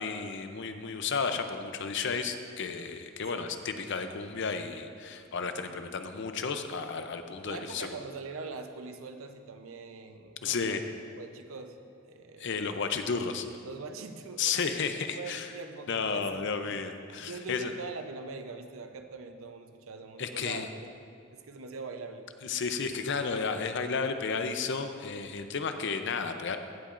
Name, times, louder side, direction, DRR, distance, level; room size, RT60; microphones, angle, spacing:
voice 1, 0.0-7.9 10.4-10.8 12.4-13.5 14.4-15.5 15.9-17.7 20.2-20.7 22.4-26.6, left 5 dB, 60° left, 7 dB, 0.6 m, -32 dB
voice 2, 7.4-10.9 11.2-11.8 12.1-12.8 13.6-14.6 14.9-16.9 17.2-20.9 21.3-22.3, right 4 dB, 80° right, 6 dB, 0.7 m, -43 dB
16.0 x 8.5 x 2.5 m, 2.4 s
head